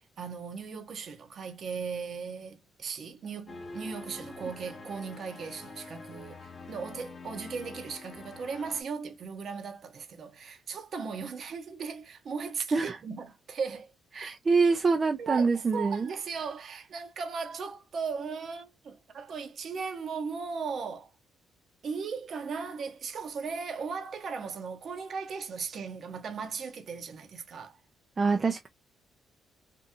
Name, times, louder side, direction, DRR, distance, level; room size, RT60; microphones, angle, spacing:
voice 1, 0.2-12.8 13.0-14.4 15.2-21.1 21.8-27.8, right 5 dB, 50° right, 0.7 m, -37 dB
sound 1, 3.5-8.8, left 3 dB, 30° left, 0.7 m, -45 dB
voice 2, 14.1-16.1 28.2-28.7, right 4 dB, 30° right, 0.4 m, -25 dB
2.8 x 2.6 x 2.2 m
cardioid pair, 115°, 0 cm